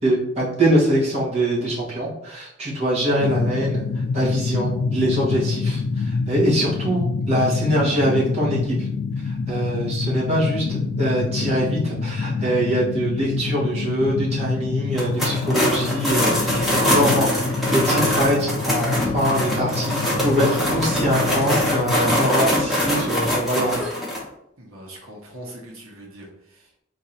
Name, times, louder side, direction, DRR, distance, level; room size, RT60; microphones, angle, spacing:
voice 1, 0.0-8.9 9.2-23.8, right 1 dB, 30° right, -7 dB, 1.4 m, -23 dB
sound 1, 3.2-22.3, left 4 dB, 65° left, 0.3 m, -27 dB
sound 2, 14.9-24.2, equal, ahead, 0.9 m, -23 dB
voice 2, 24.6-26.8, right 1 dB, 80° right, -1 dB, 1.0 m, -41 dB
3.8 x 2.6 x 4.2 m, 0.78 s
head